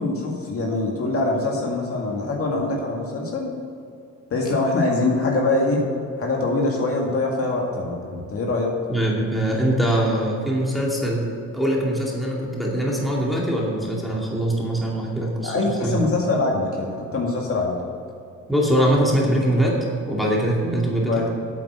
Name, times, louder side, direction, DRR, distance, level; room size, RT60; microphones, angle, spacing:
voice 1, 0.0-3.5 4.3-5.8 6.2-8.7 15.4-17.8 21.1-21.3, left 2 dB, 45° left, -1 dB, 2.1 m, -23 dB
voice 2, 8.9-11.3 11.5-16.0 18.5-19.8 20.1-21.3, right 1 dB, ahead, -3 dB, 2.4 m, -22 dB
8.6 x 8.5 x 6.9 m, 2.4 s
cardioid pair, 115°, 31 cm